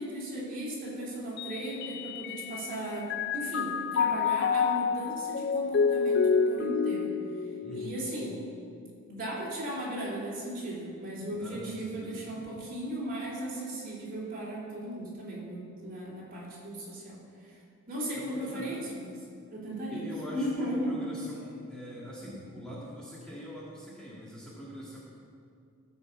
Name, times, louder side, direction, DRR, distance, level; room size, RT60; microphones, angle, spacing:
voice 1, 0.0-8.4 9.1-17.2 17.5-17.6 17.9-19.2 19.5-20.0 20.3-21.0, right 1 dB, 40° right, -5 dB, 3.0 m, -36 dB
Mallet percussion, 1.4-2.7 3.1-8.5, left 6 dB, 45° left, 0.3 m, -29 dB
voice 2, 7.6-7.9 11.3-12.3 18.1-18.7 19.9-25.0, equal, 5° left, -8 dB, 1.9 m, -43 dB
15.5 x 5.4 x 7.1 m, 2.3 s
head